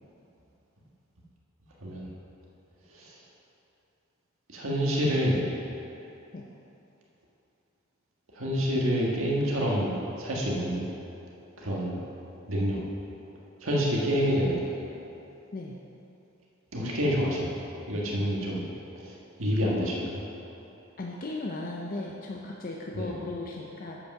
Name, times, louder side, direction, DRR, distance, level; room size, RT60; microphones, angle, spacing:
voice 1, 1.8-2.1 2.9-3.1 4.5-5.5 8.3-10.8 11.6-12.0 12.5-12.8 13.6-14.7 16.7-17.6 17.9-20.2 22.9-23.1, equal, 70° right, -4 dB, 1.7 m, -28 dB
voice 2, 21.0-24.0, left 2 dB, 40° left, -2 dB, 0.6 m, -36 dB
8.3 x 5.4 x 6.5 m, 2.9 s
head